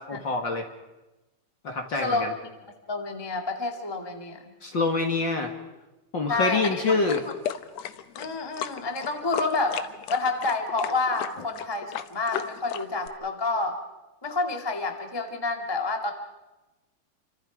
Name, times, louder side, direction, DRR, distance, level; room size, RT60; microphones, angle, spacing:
voice 1, 0.1-0.6 1.6-2.3 4.6-5.5 6.1-7.2, left 3 dB, 40° left, 4 dB, 2.1 m, -26 dB
voice 2, 2.9-4.5 6.3-7.0 7.3-7.4 8.1-9.8 10.1-13.8 14.2-16.1, left 3 dB, 10° left, 4 dB, 1.3 m, -29 dB
sound 1, 7.1-13.1, left 10 dB, 65° left, 1.8 m, -35 dB
29.0 x 25.0 x 5.1 m, 1.1 s
omnidirectional pair, 3.8 m